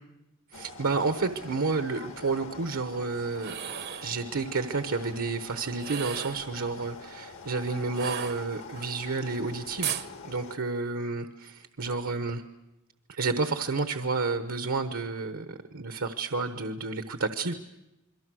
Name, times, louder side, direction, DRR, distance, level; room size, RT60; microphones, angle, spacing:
sound 1, 0.5-10.6, left 4 dB, 65° left, 1.5 m, -45 dB
voice 1, 0.5-3.5 4.0-10.0 10.2-12.4 13.1-17.5, right 3 dB, 70° right, 9 dB, 1.1 m, -30 dB
sound 2, 3.3-4.1 5.8-6.5 7.9-8.8 9.8-10.1, right 10 dB, 50° right, 0.9 m, -35 dB
28.0 x 22.5 x 6.3 m, 0.91 s
head